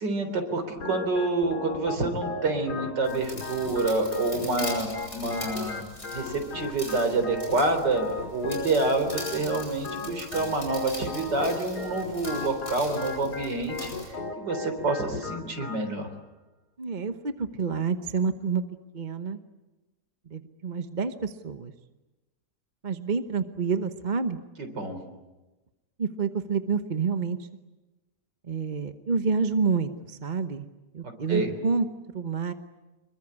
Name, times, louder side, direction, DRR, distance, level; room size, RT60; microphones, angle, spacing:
voice 1, 0.0-5.8 6.1-16.1 24.6-25.0 31.0-31.5, right 2 dB, 80° right, 7 dB, 4.4 m, -28 dB
Organ, 0.8-15.8, left 4 dB, 65° left, 2.6 m, -37 dB
sound 1, 3.0-14.1, left 1 dB, 40° left, 7.8 m, -42 dB
voice 2, 16.8-18.6 18.9-19.4 20.3-21.7 22.8-24.4 26.0-27.5 28.5-30.7 30.9-31.9 32.1-32.5, right 5 dB, 35° right, 9 dB, 0.9 m, -28 dB
26.5 x 22.5 x 9.8 m, 1.1 s
omnidirectional pair, 1.9 m